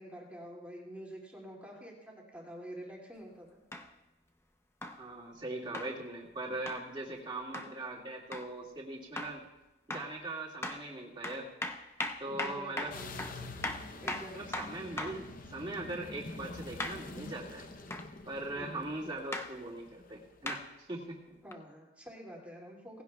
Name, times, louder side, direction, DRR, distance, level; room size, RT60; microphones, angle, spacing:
voice 1, 0.0-3.5 12.3-13.7 14.0-14.6 18.5-18.9 21.4-23.0, equal, 10° right, -3 dB, 2.4 m, -47 dB
sound 1, 3.7-3.9 4.8-5.0 5.7-5.9 6.7-6.8 7.5-7.7 8.3-8.5 9.2-9.4 9.9-10.1 10.6-10.8 11.2-15.2 16.8-17.0 17.9-18.1 19.3-19.5 20.5-20.6 21.5-21.6, left 2 dB, 15° left, 0.6 m, -38 dB
voice 2, 5.0-9.4 9.9-11.5 12.2-12.9 14.3-17.7 18.3-21.4, right 2 dB, 25° right, -2 dB, 2.1 m, -40 dB
sound 2, 12.9-20.3, left 2 dB, 45° left, 0.8 m, -46 dB
18.5 x 16.0 x 2.3 m, 1.0 s
head